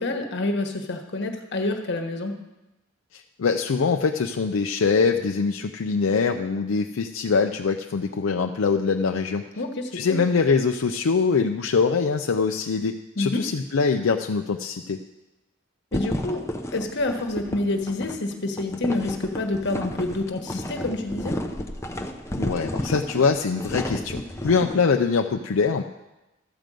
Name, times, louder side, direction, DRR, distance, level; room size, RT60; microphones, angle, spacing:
voice 1, 0.0-2.4 9.6-10.2 13.2-13.4 15.9-16.4 16.7-21.4, left 2 dB, 60° left, 4 dB, 1.2 m, -28 dB
voice 2, 3.1-9.5 9.9-15.0 22.3-25.8, left 5 dB, 85° left, 4 dB, 0.5 m, -23 dB
sound 1, 15.9-24.8, left 1 dB, 15° left, 0.7 m, -32 dB
13.0 x 5.2 x 7.6 m, 1.0 s
head